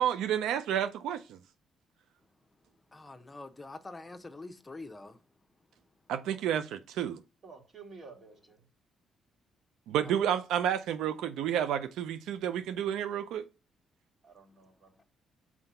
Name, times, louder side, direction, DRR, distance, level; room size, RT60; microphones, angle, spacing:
voice 1, 0.0-1.4 6.1-7.2 9.9-13.4, right 10 dB, 85° right, 0.4 m, -30 dB
voice 2, 2.9-5.2 10.0-10.1, left 2 dB, 20° left, 0.8 m, -45 dB
voice 3, 7.4-8.6 14.2-15.0, right 4 dB, 45° right, 2.2 m, -51 dB
5.8 x 4.5 x 5.4 m
cardioid pair, 90°, 0 cm